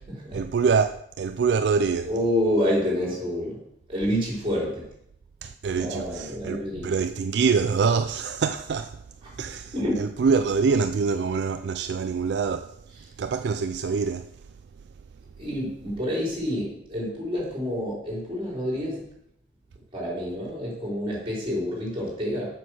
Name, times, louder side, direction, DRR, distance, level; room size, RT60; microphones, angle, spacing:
voice 1, 0.3-2.1 5.4-9.0 9.4-12.8 13.2-14.3, right 5 dB, 65° right, 0.4 m, -25 dB
voice 2, 2.1-3.6 3.9-4.8 5.8-6.8 9.7-10.0 15.4-19.0 19.9-22.5, equal, 30° right, 4.3 m, -28 dB
7.5 x 6.2 x 6.3 m
head